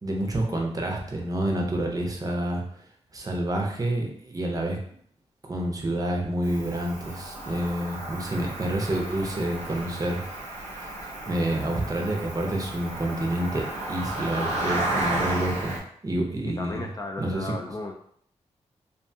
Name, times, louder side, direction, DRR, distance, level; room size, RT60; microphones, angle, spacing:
voice 1, 0.0-2.6 3.1-4.8 5.5-10.2 10.6-10.9 11.3-15.8 16.0-16.9 17.2-17.5, right 1 dB, 30° right, 0 dB, 0.6 m, -28 dB
Cricket, 6.4-15.8, right 2 dB, 80° right, 0.8 m, -33 dB
voice 2, 11.0-11.4 16.4-17.9, left 2 dB, 30° left, 2 dB, 0.4 m, -36 dB
2.5 x 2.2 x 2.6 m, 0.63 s
cardioid pair, 75°, 12 cm